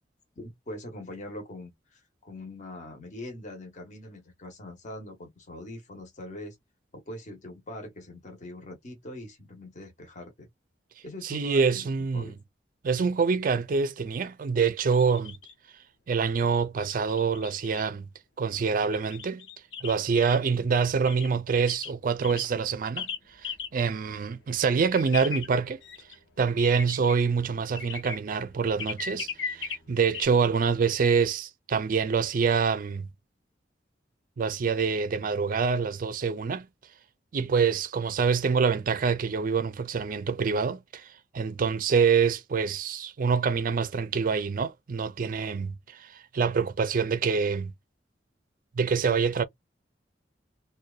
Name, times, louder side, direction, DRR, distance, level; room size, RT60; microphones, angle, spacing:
voice 1, 0.4-6.6 6.9-10.5 11.0-12.4, left 1 dB, 45° left, 0.8 m, -42 dB
voice 2, 11.2-12.3 12.8-15.4 16.1-18.1 18.4-19.5 19.8-23.1 23.4-25.8 26.4-33.1 34.4-36.7 37.3-41.1 41.3-47.7 48.7-49.4, right 5 dB, 50° right, 0.4 m, -26 dB
sound 1, 14.9-15.5 16.5-17.8 18.8-20.4 21.1-21.3 21.7-21.9 22.2-22.4 23.0-23.2 23.4-23.7 24.1-24.2 24.4-24.5 24.7-30.3, left 7 dB, 85° left, 0.7 m, -37 dB
2.6 x 2.2 x 2.3 m
head